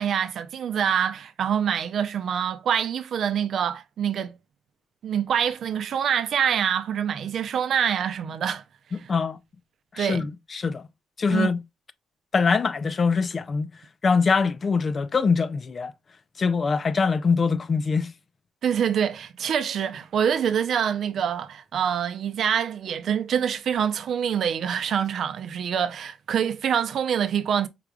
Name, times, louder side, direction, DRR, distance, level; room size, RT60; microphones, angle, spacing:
voice 1, 0.0-4.4 5.0-8.6 9.0-9.1 10.0-10.3 11.3-11.5 18.6-27.7, right 8 dB, 65° right, 0.5 m, -25 dB
voice 2, 9.1-9.4 9.9-10.2 10.5-10.8 11.2-11.6 12.3-13.7 14.0-15.9 16.4-18.1, left 5 dB, 40° left, 0.4 m, -23 dB
4.9 x 3.4 x 2.2 m
cardioid pair, 90°, 0 cm